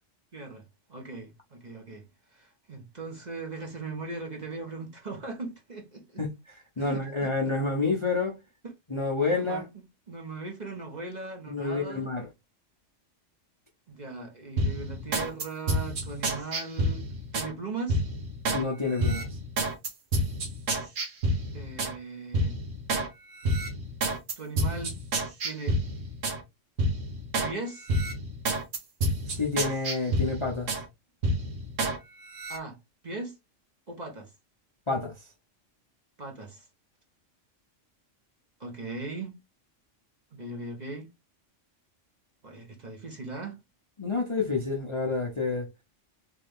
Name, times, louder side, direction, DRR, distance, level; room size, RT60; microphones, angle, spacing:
voice 1, 0.3-0.6 0.9-2.0 2.3-6.2 6.8-7.5 9.3-12.1 13.9-17.1 17.3-18.0 21.5-22.6 24.4-24.9 25.4-25.8 27.4-27.9 32.5-32.8 33.0-33.4 33.9-34.3 36.2-36.6 38.6-39.4 40.3-41.1 42.4-43.6, right 3 dB, 35° right, 1.1 m, -39 dB
voice 2, 6.2-8.4 8.9-9.6 11.5-12.3 18.5-19.3 29.3-30.7 34.9-35.1 44.0-45.7, left 3 dB, 30° left, 0.7 m, -29 dB
sound 1, 14.6-17.5 17.9-18.6 19.0-22.0 22.3-23.1 23.4-26.4 26.8-27.5 27.9-30.9 31.2-32.0 32.3-32.6, right 1 dB, 80° right, 1.5 m, -29 dB
3.5 x 3.3 x 3.5 m
omnidirectional pair, 1.3 m